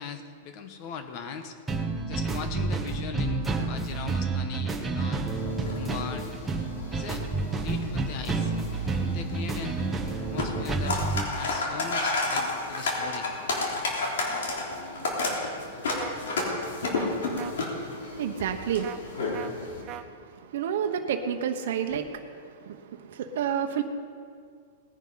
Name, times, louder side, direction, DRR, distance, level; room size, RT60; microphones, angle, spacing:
voice 1, 0.0-1.6 2.1-5.2 5.7-6.3 6.9-7.2 7.6-8.5 9.0-9.8 10.2-11.0 11.3-13.3, left 6 dB, 35° left, 8 dB, 1.3 m, -39 dB
sound 1, 1.7-11.3, right 3 dB, 5° right, 1.1 m, -29 dB
sound 2, 5.3-19.8, left 2 dB, 85° left, 3.6 m, -32 dB
sound 3, 16.0-16.1 16.9-17.1 17.4-17.5 18.8-19.0 19.3-19.5 19.9-20.0, right 14 dB, 30° right, 0.7 m, -38 dB
voice 2, 18.0-23.8, right 8 dB, 60° right, 5 dB, 1.2 m, -31 dB
19.0 x 10.5 x 5.8 m, 2.1 s
supercardioid pair, 165°, 0 cm